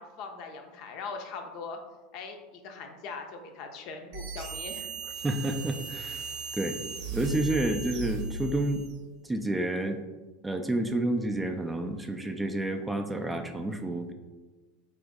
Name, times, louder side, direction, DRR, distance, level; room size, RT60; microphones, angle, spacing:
voice 1, 0.0-1.8 2.1-4.9, left 4 dB, 55° left, 5 dB, 0.5 m, -41 dB
sound 1, 4.1-9.0, right 3 dB, 65° right, 0.7 m, -37 dB
voice 2, 5.2-6.2 6.5-6.8 7.1-8.8 9.2-10.0 10.4-14.1, right 1 dB, 10° right, 5 dB, 0.3 m, -29 dB
3.8 x 2.5 x 3.5 m, 1.2 s
hypercardioid pair, 95°, 0 cm